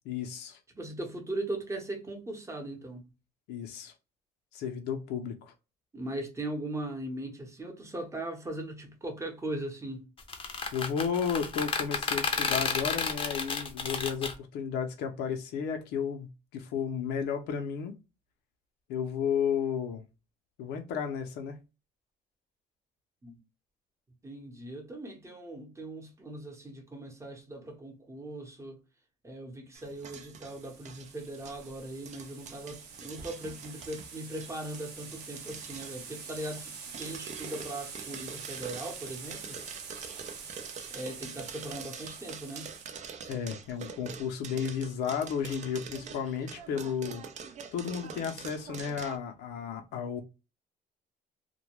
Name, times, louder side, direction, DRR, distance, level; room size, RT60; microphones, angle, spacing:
voice 1, 0.1-0.6 3.5-3.9 4.5-5.5 10.7-17.9 18.9-20.0 20.6-21.6 43.3-47.2 47.7-50.2, left 7 dB, 85° left, 0.5 m, -33 dB
voice 2, 0.7-3.1 5.9-10.1 23.2-23.4 24.2-28.8 29.2-39.6 40.9-42.7, right 1 dB, 15° right, 0.8 m, -39 dB
sound 1, 10.2-14.3, left 5 dB, 30° left, 0.5 m, -31 dB
sound 2, 29.7-49.2, right 6 dB, 45° right, 0.4 m, -45 dB
sound 3, 30.4-42.9, right 6 dB, 80° right, 0.7 m, -46 dB
2.2 x 2.1 x 2.9 m
cardioid pair, 110°, 17 cm